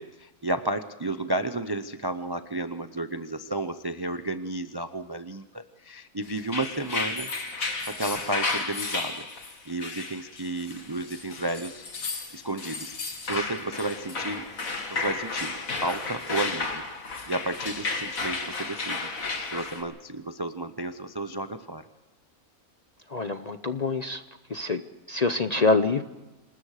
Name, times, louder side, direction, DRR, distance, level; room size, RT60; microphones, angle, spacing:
voice 1, 0.0-7.3 7.8-9.3 9.7-11.9 12.3-12.9 13.2-14.4 14.9-15.5 15.8-16.8 17.3-21.8, right 2 dB, 30° right, 10 dB, 0.4 m, -32 dB
sound 1, 6.4-19.8, left 3 dB, 65° left, 2.5 m, -33 dB
voice 2, 23.1-24.2 24.5-24.8 25.1-26.0, left 3 dB, 40° left, 9 dB, 0.6 m, -25 dB
27.0 x 20.0 x 4.9 m, 1.1 s
omnidirectional pair, 1.5 m